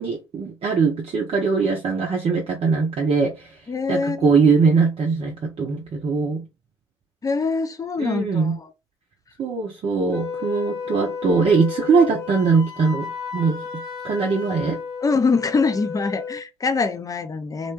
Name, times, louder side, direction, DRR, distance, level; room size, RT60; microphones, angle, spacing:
voice 1, 0.0-3.5 3.9-6.4 8.0-8.6 9.4-13.1 13.3-13.6 14.0-14.8, right 5 dB, 40° right, 0.6 m, -21 dB
voice 2, 3.7-4.5 7.2-8.6 15.0-17.7, left 4 dB, 25° left, 0.5 m, -24 dB
Wind instrument woodwind instrument, 10.1-16.4, left 6 dB, 65° left, 1.3 m, -33 dB
2.3 x 2.2 x 3.0 m
figure-of-eight pair, 50°, 14 cm